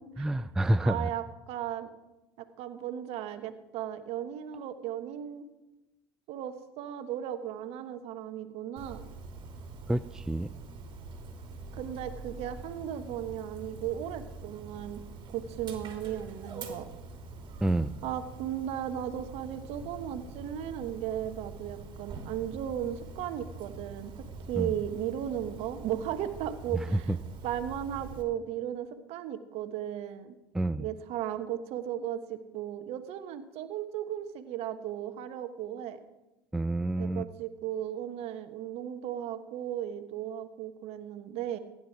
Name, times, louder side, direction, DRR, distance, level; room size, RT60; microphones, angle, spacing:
voice 1, 0.2-1.1 9.9-10.5 17.6-18.0 24.6-24.7 26.7-27.2 30.5-30.9 36.5-37.3, right 1 dB, 5° right, 13 dB, 0.4 m, -28 dB
voice 2, 0.8-1.9 2.4-5.5 6.3-9.0 11.7-15.0 15.3-16.9 18.0-27.1 27.4-30.3 30.8-36.0 37.0-41.6, right 10 dB, 55° right, 9 dB, 1.3 m, -36 dB
Dog, 8.8-28.2, right 3 dB, 40° right, 3.0 m, -45 dB
16.0 x 10.5 x 4.7 m, 1.0 s
hypercardioid pair, 85°, 12 cm